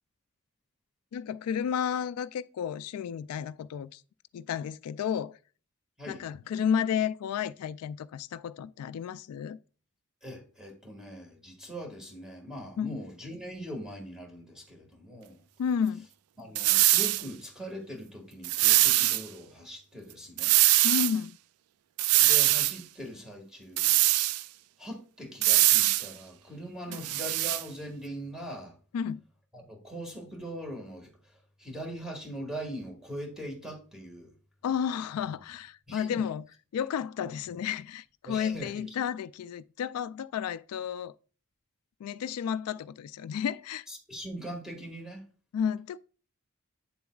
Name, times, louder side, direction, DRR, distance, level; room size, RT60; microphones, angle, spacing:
voice 1, 1.1-4.0 4.3-5.4 6.1-9.6 12.8-13.0 15.6-16.1 20.8-21.4 26.9-27.1 28.9-29.2 34.6-36.5 36.7-41.1 42.0-43.9 45.5-46.0, left 8 dB, 90° left, 0.3 m, -32 dB
voice 2, 10.2-15.4 16.4-20.6 22.2-24.0 24.8-28.8 29.5-31.1 31.6-34.3 35.9-36.2 38.2-38.7 43.9-45.2, equal, 5° right, 1.8 m, -41 dB
sound 1, 16.6-17.2 18.4-19.2 20.4-21.1 22.0-22.8 23.8-24.4 25.4-26.1 26.9-27.6, right 16 dB, 85° right, 0.3 m, -22 dB
8.5 x 7.0 x 2.3 m
head